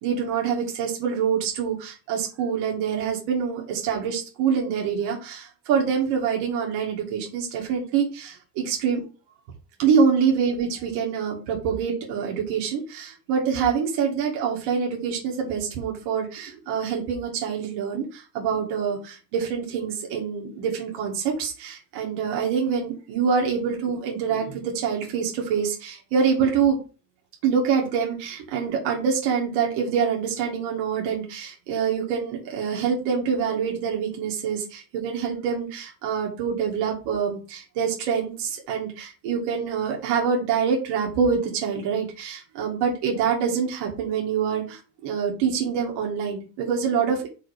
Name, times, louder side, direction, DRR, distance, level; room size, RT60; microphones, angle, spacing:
voice 1, 0.0-9.0 9.8-26.8 27.4-47.3, right 6 dB, 85° right, -1 dB, 1.9 m, -25 dB
5.0 x 3.9 x 4.9 m, 0.35 s
cardioid pair, 165°, 40 cm